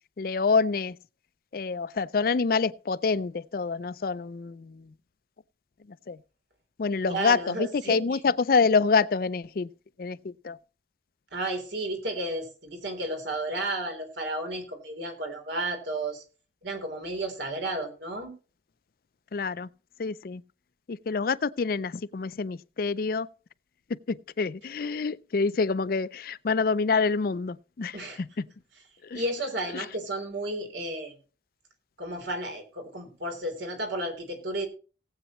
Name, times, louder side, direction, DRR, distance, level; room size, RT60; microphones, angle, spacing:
voice 1, 0.2-1.0 1.5-4.9 6.1-6.2 6.8-9.7 10.0-10.6 19.3-19.7 20.0-20.4 20.9-23.3 23.9-28.5 29.0-29.2 29.7-29.9, left 4 dB, 50° left, 0.4 m, -27 dB
voice 2, 7.0-8.0 11.3-16.2 16.6-18.3 27.9-28.2 29.1-31.1 32.0-34.7, right 1 dB, 85° right, 3.4 m, -33 dB
18.5 x 8.2 x 3.0 m
head